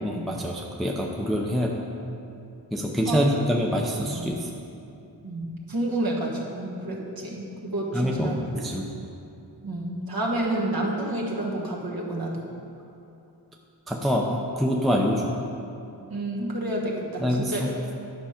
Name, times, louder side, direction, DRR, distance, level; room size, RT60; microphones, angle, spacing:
voice 1, 0.0-1.8 2.7-4.5 7.9-9.0 13.9-15.4 17.2-17.7, equal, ahead, -1 dB, 0.6 m, -25 dB
voice 2, 5.2-8.4 9.6-12.5 16.1-17.6, right 1 dB, 55° right, -3 dB, 1.4 m, -29 dB
10.0 x 5.6 x 5.0 m, 2.7 s
wide cardioid pair, 90°, 42 cm